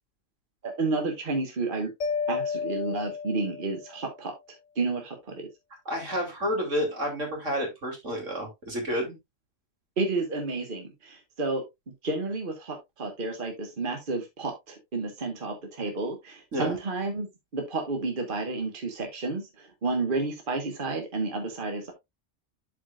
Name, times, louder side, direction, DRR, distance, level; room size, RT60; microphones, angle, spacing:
voice 1, 0.6-1.9 2.3-4.3 4.8-5.5 10.0-11.6 12.0-17.3 17.5-19.5 19.8-21.9, right 3 dB, 45° right, 4 dB, 1.5 m, -31 dB
Mallet percussion, 2.0-4.1, left 5 dB, 80° left, 1.2 m, -32 dB
voice 2, 5.8-9.2 16.5-16.8, equal, 75° right, 2 dB, 3.3 m, -30 dB
12.0 x 4.9 x 2.4 m, 0.20 s
omnidirectional pair, 1.3 m